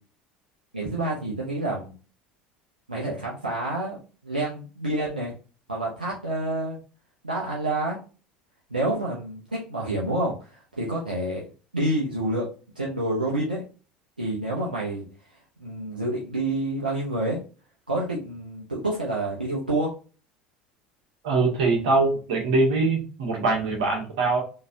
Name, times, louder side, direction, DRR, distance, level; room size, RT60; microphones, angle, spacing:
voice 1, 0.7-1.9 2.9-5.3 5.7-6.8 7.2-8.0 8.7-11.4 11.7-12.5 12.7-13.6 14.2-17.4 17.9-19.9, right 1 dB, 85° right, -5 dB, 0.8 m, -28 dB
voice 2, 21.2-24.4, right 3 dB, 65° right, -1 dB, 1.6 m, -23 dB
4.0 x 3.2 x 2.6 m, 0.37 s
figure-of-eight pair, 70°, 5 cm